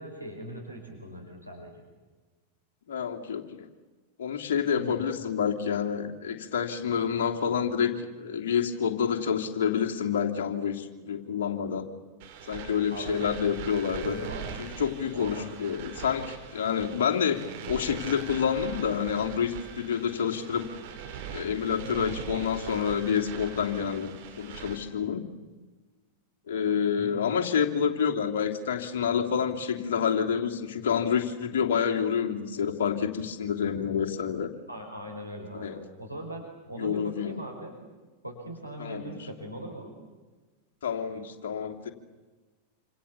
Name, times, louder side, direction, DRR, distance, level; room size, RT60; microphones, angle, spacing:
voice 1, 0.0-1.9 4.8-5.1 12.9-13.4 14.0-14.7 15.1-15.5 21.8-22.1 27.0-27.4 34.7-37.8 38.2-40.0, equal, 90° right, 1 dB, 5.3 m, -40 dB
voice 2, 2.9-3.7 4.2-11.8 12.5-14.2 14.6-20.9 21.3-25.3 26.5-34.5 35.6-35.8 36.7-37.4 38.8-39.1 40.8-41.9, left 7 dB, 60° left, 3 dB, 3.0 m, -28 dB
sound 1, 12.2-24.8, right 8 dB, 50° right, 5.0 m, -41 dB
28.0 x 27.0 x 7.1 m, 1.3 s
figure-of-eight pair, 90°, 0 cm